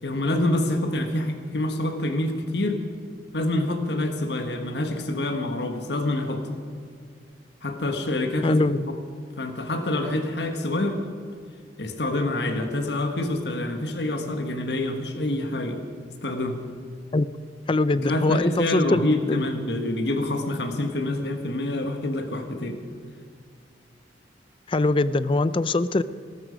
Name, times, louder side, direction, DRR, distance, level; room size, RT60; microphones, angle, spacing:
voice 1, 0.0-2.8 3.3-6.5 7.6-8.7 9.4-11.0 11.8-15.8 16.2-16.6 17.9-22.8, left 1 dB, 70° left, 6 dB, 1.5 m, -26 dB
voice 2, 8.4-8.8 17.1-17.3 17.7-19.4 24.7-26.0, left 2 dB, 30° left, 16 dB, 0.4 m, -22 dB
18.5 x 13.5 x 5.2 m, 2.2 s
head